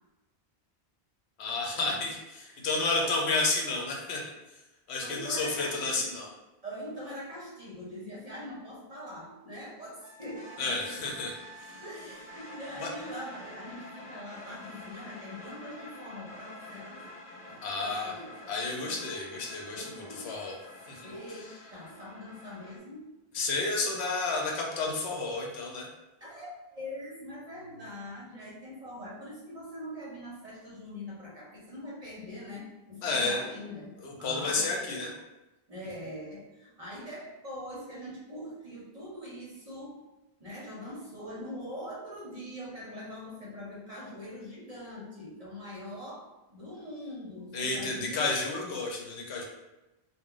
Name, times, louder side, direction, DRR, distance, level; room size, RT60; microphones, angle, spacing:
voice 1, 1.4-4.2 4.9-6.3 10.6-11.3 11.7-11.8 12.8-12.9 17.6-18.1 18.5-20.6 20.9-21.1 23.3-25.9 33.0-33.4 34.0-35.1 47.5-49.4, left 3 dB, 80° left, -1 dB, 0.9 m, -31 dB
voice 2, 2.5-3.3 5.0-6.1 6.6-11.2 11.8-17.2 17.5-18.6 18.8-19.0 19.7-20.5 21.0-23.2 26.2-35.2 35.7-40.1 40.4-48.3, left 1 dB, 40° right, -6 dB, 0.7 m, -43 dB
Wind instrument woodwind instrument, 10.0-14.4, right 3 dB, 90° right, 0.9 m, -51 dB
sound 1, 10.3-22.8, left 2 dB, 55° left, 0.7 m, -48 dB
2.2 x 2.1 x 3.7 m, 1.0 s
omnidirectional pair, 1.1 m